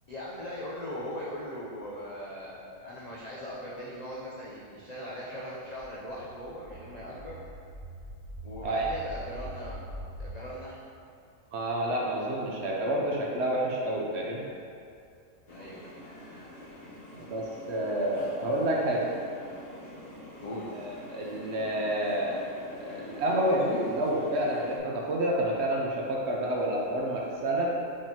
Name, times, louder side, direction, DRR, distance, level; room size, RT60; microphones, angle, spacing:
voice 1, 0.1-7.4 8.4-10.8 15.5-15.9 20.4-20.6, equal, 65° left, -7 dB, 0.4 m, -40 dB
sound 1, 5.7-10.4, equal, 85° right, 1.2 m, -43 dB
voice 2, 11.5-14.4 17.2-19.1 20.7-22.4 22.8-27.7, right 1 dB, 65° right, -3 dB, 0.8 m, -29 dB
sound 2, 15.5-24.8, left 1 dB, 50° left, 0.9 m, -46 dB
5.1 x 3.5 x 2.8 m, 2.4 s
omnidirectional pair, 1.4 m